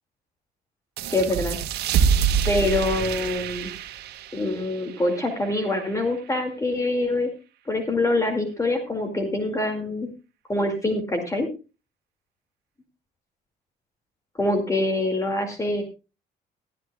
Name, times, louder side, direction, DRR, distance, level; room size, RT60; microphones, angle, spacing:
sound 1, 1.0-6.2, right 7 dB, 75° right, 1.6 m, -27 dB
voice 1, 1.1-1.6 2.5-3.7 4.3-7.3 7.7-10.1 10.5-11.5 14.4-15.8, left 2 dB, 20° left, 4 dB, 2.3 m, -25 dB
18.5 x 12.5 x 2.3 m, 0.30 s
cardioid pair, 110°, 17 cm